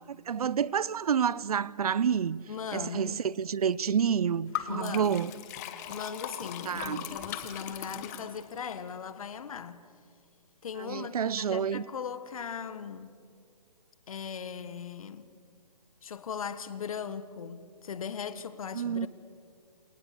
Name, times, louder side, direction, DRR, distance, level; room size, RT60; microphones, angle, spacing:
voice 1, 0.0-5.3 6.6-7.1 10.8-11.8 18.7-19.1, right 7 dB, 65° right, 0.7 m, -29 dB
voice 2, 2.5-3.2 4.7-5.5 5.9-9.9 10.6-13.1 14.1-15.3 16.0-19.1, left 7 dB, 55° left, 1.6 m, -39 dB
Liquid, 4.5-8.7, left 11 dB, 25° left, 1.5 m, -39 dB
27.5 x 27.5 x 6.8 m
hypercardioid pair, 160°, 21 cm